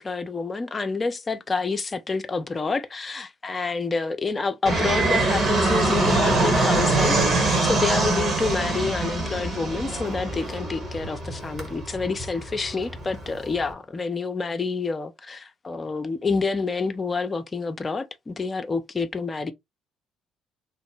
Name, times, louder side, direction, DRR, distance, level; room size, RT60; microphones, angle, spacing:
voice 1, 0.0-19.5, left 4 dB, 30° left, 0.5 m, -28 dB
Fixed-wing aircraft airplane, 4.7-13.7, right 2 dB, 40° right, 1.4 m, -24 dB
3.1 x 2.1 x 3.1 m
hypercardioid pair, 50°, 0 cm